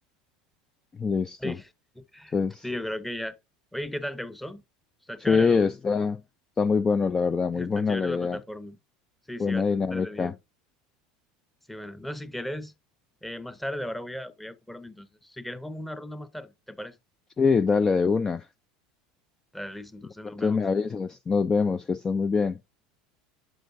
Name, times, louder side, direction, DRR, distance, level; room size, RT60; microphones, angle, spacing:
voice 1, 0.9-1.6 2.3-2.6 5.3-6.2 6.6-8.4 9.4-10.3 17.4-18.5 20.4-22.6, left 5 dB, 25° left, 0.4 m, -24 dB
voice 2, 2.0-2.3 2.6-3.4 3.7-4.6 5.1-5.6 7.5-8.8 9.3-10.4 11.7-12.7 13.2-17.0 19.5-20.6, left 1 dB, 5° left, 0.9 m, -36 dB
7.9 x 6.3 x 2.5 m
hypercardioid pair, 80°, 3 cm